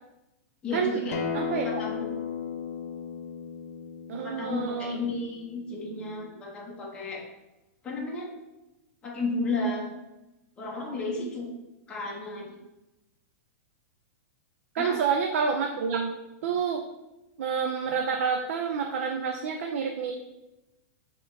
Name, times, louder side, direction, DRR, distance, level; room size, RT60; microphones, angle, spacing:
voice 1, 0.6-1.2 1.5-2.1 4.1-7.2 7.8-8.3 9.0-9.9 10.6-11.5 11.9-12.6 14.8-15.0, left 2 dB, 15° left, -4 dB, 0.8 m, -33 dB
Acoustic guitar, 1.1-6.3, left 7 dB, 80° left, 0.7 m, -36 dB
voice 2, 1.3-1.8 4.1-5.0 14.7-16.2 16.4-16.8 17.4-20.1, right 6 dB, 65° right, 3 dB, 0.5 m, -28 dB
6.9 x 2.9 x 2.6 m, 0.98 s
supercardioid pair, 160°, 8 cm